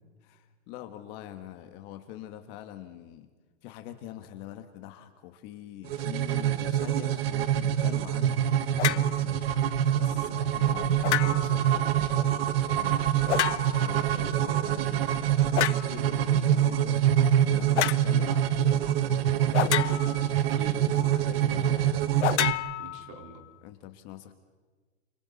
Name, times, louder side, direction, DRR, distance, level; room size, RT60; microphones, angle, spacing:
voice 1, 0.2-3.3 3.6-20.4 20.9-22.6 23.6-24.3, left 12 dB, 30° left, 7 dB, 1.4 m, -45 dB
sound 1, 5.9-22.5, right 10 dB, 60° right, 1.1 m, -25 dB
sound 2, 8.8-9.1 11.0-11.6 13.3-13.9 15.6-15.9 17.8-18.1 19.5-20.3 22.2-23.3, left 13 dB, 80° left, 0.7 m, -28 dB
voice 2, 10.2-11.5 20.3-22.1 22.8-23.5, right 5 dB, 35° right, 3 dB, 4.1 m, -46 dB
30.0 x 28.0 x 4.1 m, 1.4 s
supercardioid pair, 160°, 34 cm